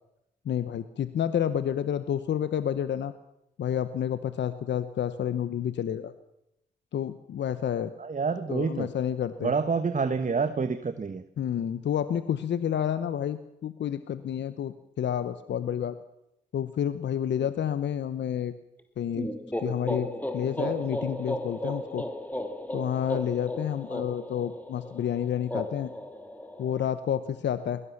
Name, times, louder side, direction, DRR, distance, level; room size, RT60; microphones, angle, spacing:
voice 1, 0.4-3.1 3.6-6.1 6.9-7.9 8.5-9.5 11.4-16.0 16.5-18.5 19.0-19.3 19.6-20.1 20.3-22.1 22.7-25.9 26.6-27.8, left 9 dB, 75° left, 13 dB, 1.0 m, -29 dB
voice 2, 8.0-8.9 9.4-11.2, right 5 dB, 45° right, 11 dB, 1.3 m, -28 dB
sound 1, 19.1-26.9, left 1 dB, 10° left, 2.9 m, -35 dB
21.5 x 18.0 x 7.2 m, 0.84 s
supercardioid pair, 50°, 19 cm